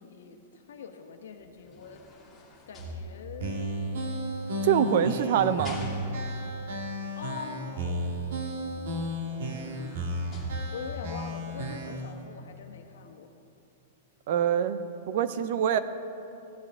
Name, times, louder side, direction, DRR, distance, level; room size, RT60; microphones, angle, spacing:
voice 1, 0.0-2.1 2.7-3.8 7.2-8.4 8.8-10.0 10.7-13.3, left 6 dB, 85° left, 4 dB, 1.2 m, -43 dB
sound 1, 1.4-3.6 4.4-6.4 8.7-8.8 9.2-11.2 11.7-11.9, left 1 dB, 10° left, 1.9 m, -43 dB
sound 2, 3.4-12.1, equal, 65° right, 1.6 m, -33 dB
voice 2, 4.6-5.8 14.3-15.8, right 9 dB, 45° right, 12 dB, 0.5 m, -25 dB
16.5 x 10.5 x 3.7 m, 2.8 s
supercardioid pair, 175°, 0 cm